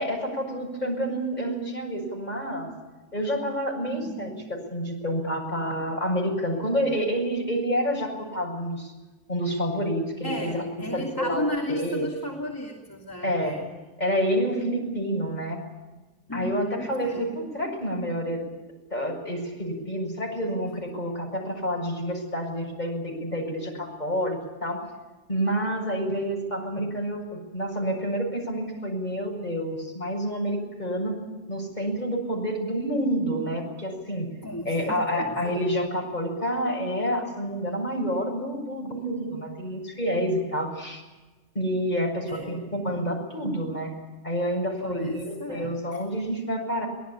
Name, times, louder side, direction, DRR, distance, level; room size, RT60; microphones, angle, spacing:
voice 1, 0.0-2.7 3.1-8.9 9.3-12.1 13.2-13.6 14.0-15.6 16.3-18.4 18.9-24.8 25.3-31.2 31.5-34.3 34.7-41.0 41.5-43.9 44.2-46.9, equal, 35° left, 1 dB, 7.4 m, -28 dB
voice 2, 3.9-4.4 10.2-13.7 16.3-17.2 34.4-35.5 42.3-42.7 44.8-46.0, left 1 dB, 15° left, 0 dB, 2.9 m, -34 dB
24.0 x 19.0 x 8.9 m, 1.2 s
omnidirectional pair, 1.2 m